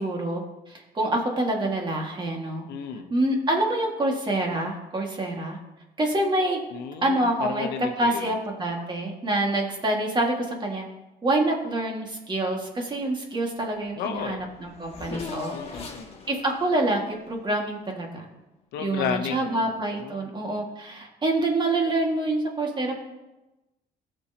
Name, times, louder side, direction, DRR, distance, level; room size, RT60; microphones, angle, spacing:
voice 1, 0.0-2.6 3.1-5.6 6.0-6.6 7.0-7.7 8.0-10.9 11.2-15.9 16.3-18.3 18.8-23.0, right 1 dB, 25° right, 1 dB, 2.0 m, -26 dB
voice 2, 2.7-3.1 6.7-8.3 14.0-14.4 15.5-16.3 18.7-19.6 20.0-20.3, left 7 dB, 80° left, 6 dB, 0.9 m, -33 dB
Race car auto racing / Accelerating revving vroom, 13.8-13.9 14.1-18.1, left 4 dB, 35° left, 1.9 m, -40 dB
16.0 x 6.4 x 2.9 m, 1.0 s
cardioid pair, 110°, 17 cm